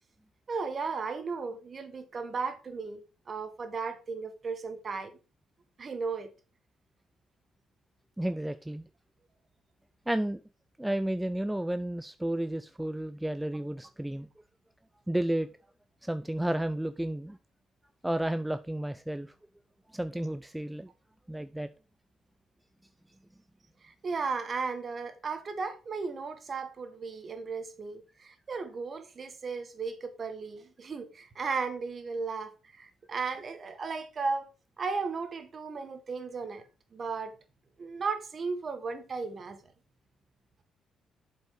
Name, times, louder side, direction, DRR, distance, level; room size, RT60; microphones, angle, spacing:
voice 1, 0.5-3.0 3.3-5.1 5.8-6.3 23.8-34.5 34.8-37.3 37.8-39.6, right 4 dB, 40° right, 1.5 m, -35 dB
voice 2, 8.2-8.8 10.1-10.4 10.8-14.3 15.1-15.5 16.0-17.4 18.0-19.3 19.9-20.9 21.3-21.7, right 1 dB, 5° right, 0.4 m, -32 dB
7.6 x 5.4 x 5.0 m
cardioid pair, 90°, 0 cm